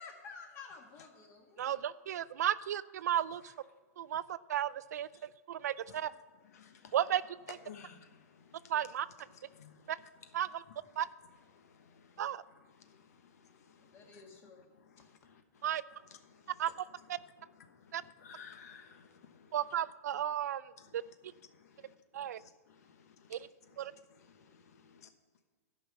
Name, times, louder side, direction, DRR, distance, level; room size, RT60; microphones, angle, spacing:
voice 1, 0.0-1.8 13.8-14.7, left 5 dB, 25° left, 2 dB, 1.7 m, -52 dB
voice 2, 1.6-3.4 4.0-5.1 5.5-6.1 6.9-7.2 8.7-9.1 9.9-10.0 10.3-10.6 11.0-11.1 12.2-12.4 15.6-15.8 16.6-16.7 17.9-18.0 19.5-20.6 20.9-21.0 22.1-22.4 23.3-23.4 23.8-23.9, right 11 dB, 90° right, 17 dB, 0.4 m, -33 dB
voice 3, 5.6-6.1 6.4-6.9 7.5-10.4 10.7-11.0 11.5-19.8 20.8-25.1, left 7 dB, 75° left, 8 dB, 1.1 m, -58 dB
12.5 x 5.5 x 7.2 m, 1.5 s
supercardioid pair, 165°, 9 cm